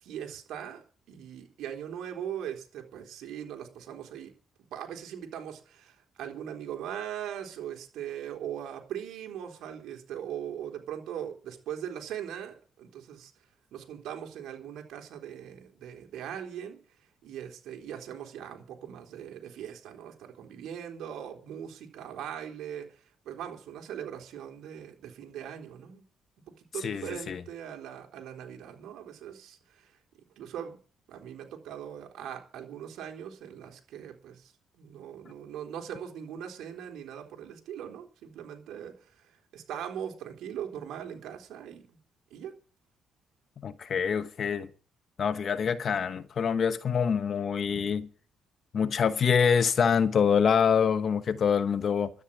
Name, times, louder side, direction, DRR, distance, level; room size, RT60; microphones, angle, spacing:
voice 1, 0.0-4.3 4.7-13.3 13.7-16.8 17.2-23.0 23.3-26.0 26.6-29.9 30.4-30.8 31.1-38.9 39.3-42.0 42.3-42.5, right 9 dB, 85° right, 3.6 m, -40 dB
voice 2, 26.8-27.4 43.6-44.7 45.2-48.1 48.7-52.1, left 7 dB, 55° left, 1.1 m, -25 dB
13.0 x 9.7 x 8.6 m
cardioid pair, 90°, 0 cm